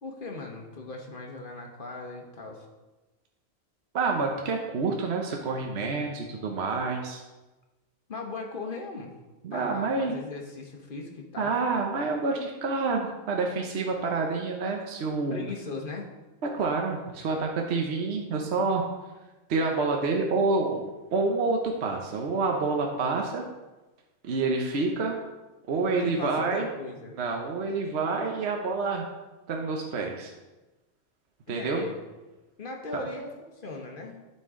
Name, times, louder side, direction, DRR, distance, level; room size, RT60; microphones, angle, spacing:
voice 1, 0.0-2.7 8.1-9.1 9.5-11.5 15.3-16.1 25.9-27.2 31.5-31.9 32.6-33.3 33.6-34.2, left 3 dB, 45° left, 1 dB, 1.1 m, -38 dB
voice 2, 3.9-7.2 9.4-10.1 11.4-15.4 16.4-18.9 19.5-20.8 21.1-23.4 24.2-25.2 25.7-26.7 27.1-29.1 29.5-30.3 31.5-31.9 32.9-33.0, right 3 dB, 60° right, 1 dB, 1.0 m, -28 dB
12.0 x 4.4 x 3.7 m, 1.1 s
omnidirectional pair, 1.4 m